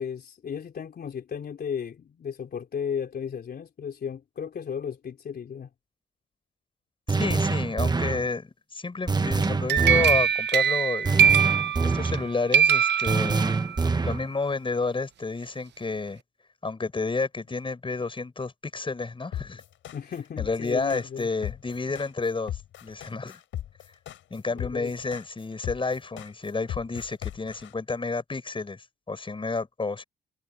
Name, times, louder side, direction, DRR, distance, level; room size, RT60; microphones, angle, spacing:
voice 1, 0.0-5.7 19.9-21.3 24.5-24.9, left 7 dB, 50° left, 3.7 m, -34 dB
voice 2, 7.1-11.2 11.8-13.4 14.0-16.2 16.6-19.6 20.4-23.4 24.3-30.0, left 3 dB, 25° left, 6.8 m, -30 dB
sound 1, 7.1-8.3 9.1-10.2 11.1-12.3 13.1-14.3, right 4 dB, 20° right, 1.2 m, -25 dB
sound 2, 9.4-12.2 12.5-13.8, right 8 dB, 60° right, 1.0 m, -22 dB
sound 3, 19.3-27.7, left 11 dB, 75° left, 6.6 m, -36 dB
cardioid pair, 90°, 20 cm